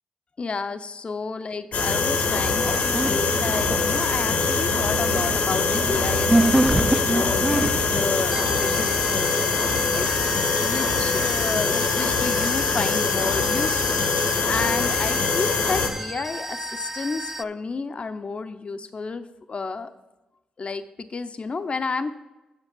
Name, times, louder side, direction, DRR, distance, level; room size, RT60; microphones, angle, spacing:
voice 1, 0.4-14.0 14.5-19.9 20.6-22.2, left 4 dB, 45° left, 10 dB, 0.5 m, -31 dB
sound 1, 1.7-15.9, left 4 dB, 80° left, 1.1 m, -23 dB
sound 2, 1.8-11.6, right 5 dB, 55° right, 1.1 m, -36 dB
sound 3, 2.4-4.0 4.3-17.4, right 1 dB, 15° right, 0.3 m, -29 dB
7.3 x 5.2 x 6.7 m, 1.1 s
supercardioid pair, 45°, 3 cm